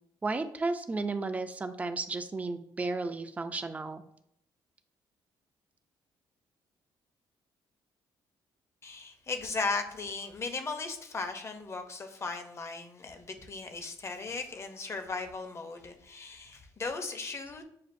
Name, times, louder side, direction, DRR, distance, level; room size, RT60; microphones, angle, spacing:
voice 1, 0.2-4.0, right 3 dB, 15° right, 8 dB, 0.4 m, -33 dB
voice 2, 8.8-17.6, left 4 dB, 30° left, 7 dB, 0.6 m, -37 dB
7.2 x 2.4 x 2.6 m, 0.72 s
cardioid pair, 130°, 9 cm